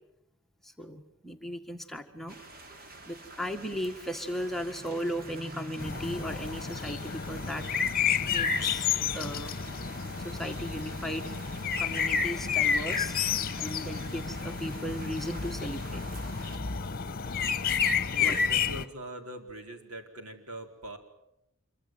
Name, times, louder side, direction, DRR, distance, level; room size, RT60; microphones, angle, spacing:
voice 1, 0.6-2.4 3.1-7.7 8.2-9.5 10.2-11.3 11.8-13.2 13.5-16.0 18.2-18.4, equal, ahead, 4 dB, 1.7 m, -36 dB
sound 1, 2.3-16.6, right 2 dB, 45° right, 3.0 m, -48 dB
sound 2, 5.8-18.8, left 6 dB, 40° left, 1.2 m, -30 dB
voice 2, 18.1-21.0, right 1 dB, 75° right, 5 dB, 4.6 m, -43 dB
27.0 x 24.5 x 7.9 m, 0.83 s
head